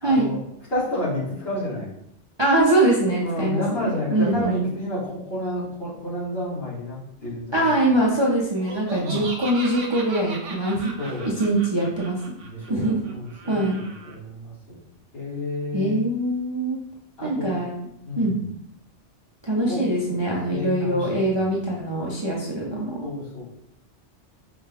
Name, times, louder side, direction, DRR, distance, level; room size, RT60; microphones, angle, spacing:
voice 1, 0.0-0.4 0.7-1.9 3.2-7.7 9.0-9.2 11.0-11.3 12.5-14.8 15.1-16.0 17.2-17.6 18.1-18.4 19.7-19.8 20.5-21.3 23.0-23.4, left 1 dB, 55° left, -8 dB, 2.0 m, -30 dB
voice 2, 2.4-4.7 7.5-12.2 12.7-13.0 13.5-13.8 15.7-16.8 17.2-17.7 18.2-18.4 19.4-23.1, right 1 dB, 30° right, -4 dB, 0.5 m, -23 dB
Laughter, 8.5-14.1, right 3 dB, 80° right, 1.0 m, -38 dB
4.9 x 2.3 x 3.3 m, 0.75 s
omnidirectional pair, 1.2 m